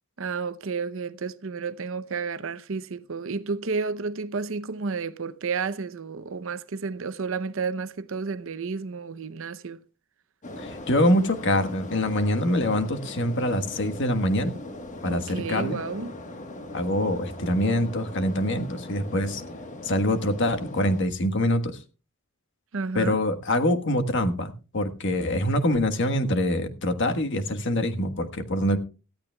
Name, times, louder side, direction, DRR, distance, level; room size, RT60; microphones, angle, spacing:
voice 1, 0.2-9.8 15.0-16.1 22.7-23.2, right 4 dB, 65° right, 0.7 m, -31 dB
sound 1, 10.4-21.0, left 1 dB, 35° left, 1.4 m, -40 dB
voice 2, 10.6-14.5 15.0-15.8 16.7-19.4 19.8-21.8 22.9-28.8, left 1 dB, 60° left, 1.4 m, -25 dB
18.5 x 13.5 x 2.3 m
head